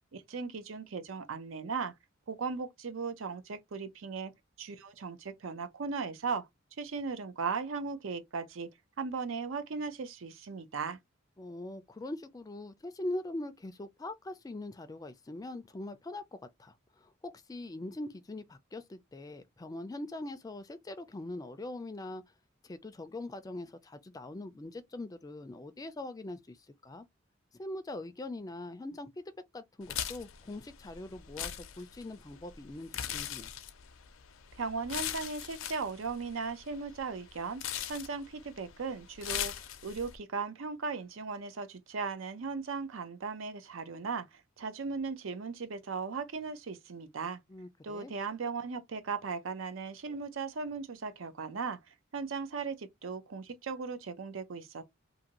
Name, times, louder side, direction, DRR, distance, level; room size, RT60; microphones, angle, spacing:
voice 1, 0.1-1.9 2.3-4.3 4.6-6.5 6.8-8.7 9.0-11.0 34.5-37.6 37.9-39.5 39.8-44.2 44.6-47.4 47.8-54.8, right 5 dB, 85° right, 0.6 m, -37 dB
voice 2, 11.4-16.2 16.6-22.2 22.6-26.6 26.8-27.1 27.6-29.2 29.5-31.5 31.8-33.5 47.5-48.1, left 2 dB, 20° left, 0.3 m, -42 dB
sound 1, 29.8-40.2, left 10 dB, 85° left, 0.5 m, -41 dB
2.6 x 2.5 x 2.9 m
head